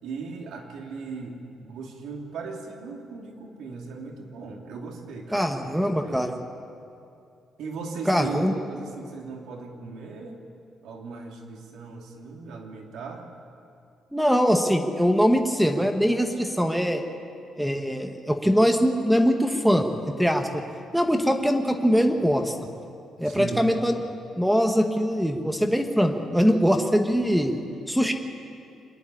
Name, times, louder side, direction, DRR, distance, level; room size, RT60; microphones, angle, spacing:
voice 1, 0.0-6.2 7.6-10.4 10.8-13.2 23.2-23.7, right 4 dB, 80° right, 1 dB, 2.9 m, -37 dB
voice 2, 5.3-6.3 8.1-8.5 14.1-17.0 17.6-19.9 20.2-20.6 20.9-22.5 23.2-24.1 24.4-27.6 27.9-28.1, equal, ahead, 5 dB, 1.2 m, -22 dB
25.5 x 11.0 x 9.9 m, 2.5 s
cardioid pair, 160°, 0 cm